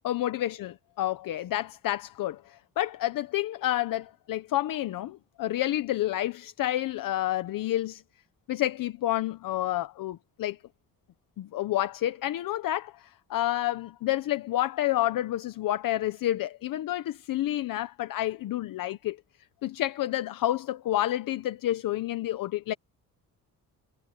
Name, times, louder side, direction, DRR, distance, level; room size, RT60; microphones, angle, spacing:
voice 1, 0.0-8.0 8.5-10.6 11.4-19.2 19.6-22.7, left 14 dB, 70° left, 0.9 m, -29 dB
cardioid pair, 165°, 35 cm